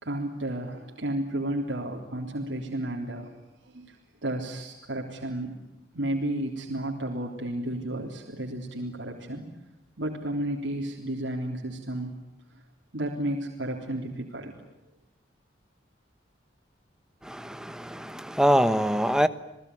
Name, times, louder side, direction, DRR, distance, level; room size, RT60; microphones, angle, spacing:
voice 1, 0.0-3.3 3.6-5.6 5.9-9.5 10.0-12.1 12.5-12.6 12.9-14.7, right 1 dB, 85° right, 3.5 m, -32 dB
voice 2, 17.3-19.3, equal, 5° right, 1.0 m, -24 dB
29.0 x 19.5 x 10.0 m
head